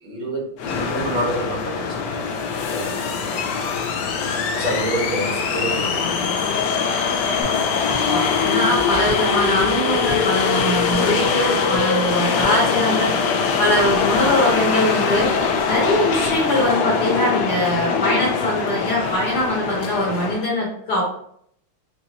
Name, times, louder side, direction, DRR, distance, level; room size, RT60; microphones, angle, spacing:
voice 1, 0.0-2.2 2.7-3.8 4.5-6.1, right 1 dB, 70° right, -5 dB, 2.2 m, -28 dB
sound 1, 0.6-20.4, left 5 dB, 85° left, 0.9 m, -22 dB
sound 2, 7.4-12.7, equal, 35° right, 1.0 m, -36 dB
voice 2, 8.1-21.0, left 1 dB, 60° left, -4 dB, 1.3 m, -22 dB
5.1 x 2.3 x 2.8 m, 0.69 s
omnidirectional pair, 2.4 m